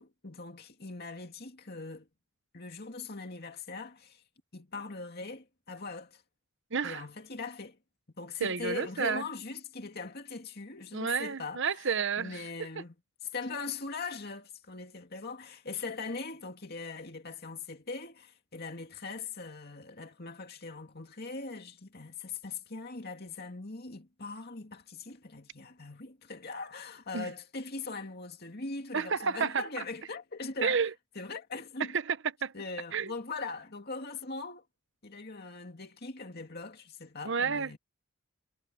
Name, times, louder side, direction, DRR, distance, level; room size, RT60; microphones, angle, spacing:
voice 1, 0.0-2.1 2.5-4.2 4.5-6.2 6.8-7.8 8.2-11.8 12.2-12.9 13.2-30.9 31.2-31.9 32.5-34.6 35.0-37.8, left 3 dB, 45° left, 2.5 m, -41 dB
voice 2, 6.7-7.0 8.4-9.2 10.9-12.4 27.1-27.3 28.9-29.6 30.6-30.9 31.9-32.5 32.9-33.1 37.2-37.7, right 6 dB, 55° right, 0.9 m, -30 dB
head